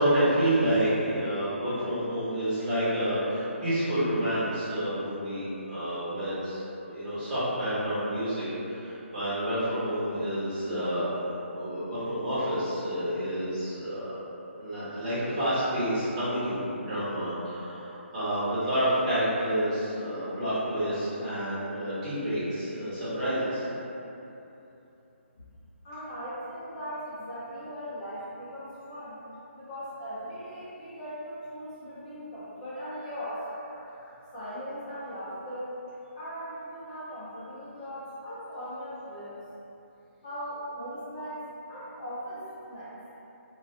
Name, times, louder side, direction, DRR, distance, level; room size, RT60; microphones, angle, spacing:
voice 1, 0.0-11.1 11.5-14.2 14.6-23.6, right 1 dB, 30° right, -12 dB, 1.2 m, -29 dB
voice 2, 25.8-29.2 29.5-35.7 36.1-39.4 40.2-42.9, equal, 35° left, -10 dB, 0.7 m, -39 dB
2.4 x 2.3 x 2.4 m, 2.9 s
hypercardioid pair, 155°, 7 cm